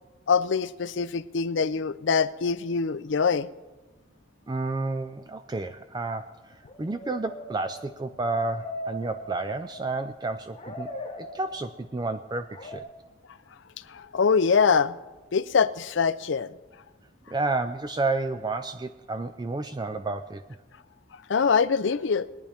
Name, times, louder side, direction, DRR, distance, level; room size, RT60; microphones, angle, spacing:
voice 1, 0.3-3.5 13.9-14.9 15.3-16.5 21.3-22.3, left 5 dB, 75° left, 15 dB, 0.5 m, -24 dB
voice 2, 4.5-10.9 11.2-12.8 17.3-20.4, right 3 dB, 20° right, 10 dB, 0.4 m, -31 dB
sound 1, 6.6-10.2 10.5-11.9 12.5-12.8, equal, 30° left, 1.1 m, -40 dB
21.0 x 10.0 x 3.5 m, 1.2 s
head